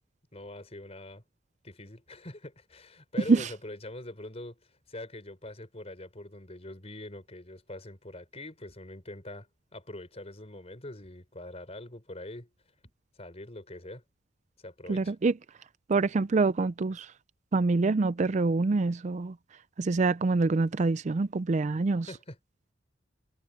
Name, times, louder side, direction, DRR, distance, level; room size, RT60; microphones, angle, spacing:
voice 1, 0.3-1.2 1.6-4.6 4.9-12.5 13.2-14.0 14.6-15.1 22.1-22.4, left 1 dB, 35° left, 5.0 m, -43 dB
voice 2, 14.9-15.3 15.9-17.1 17.5-19.3 19.8-22.1, right 3 dB, 40° right, 0.4 m, -25 dB
head